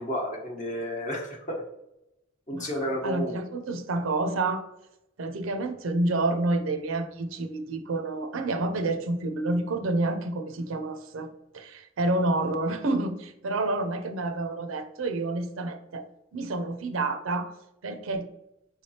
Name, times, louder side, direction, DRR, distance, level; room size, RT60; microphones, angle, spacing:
voice 1, 0.0-1.6 2.5-3.4, equal, 35° left, 0 dB, 1.0 m, -31 dB
voice 2, 2.5-4.7 5.2-11.3 11.5-16.1 16.3-17.5 17.8-18.3, right 2 dB, 75° right, 8 dB, 0.5 m, -29 dB
4.7 x 3.2 x 2.8 m, 0.86 s
head